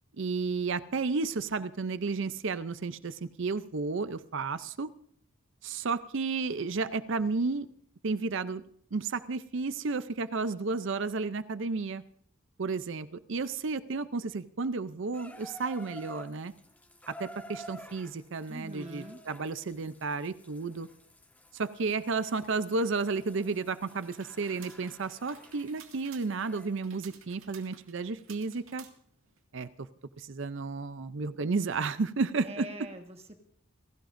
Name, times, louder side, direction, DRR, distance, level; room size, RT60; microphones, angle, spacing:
voice 1, 0.2-4.9 5.6-7.7 8.0-8.6 8.9-12.0 12.6-16.5 17.1-20.9 21.5-28.9 29.5-29.9 30.2-32.9, right 4 dB, 55° right, 13 dB, 0.5 m, -32 dB
Water tap faucet / Bathtub (filling or washing), 15.1-26.8 27.7-27.8, equal, 5° left, 1.4 m, -51 dB
voice 2, 18.5-19.2 32.4-33.4, right 1 dB, 30° right, 5 dB, 1.4 m, -43 dB
sound 1, 23.9-29.4, right 8 dB, 75° right, 2.1 m, -54 dB
29.5 x 16.5 x 2.6 m, 0.63 s
head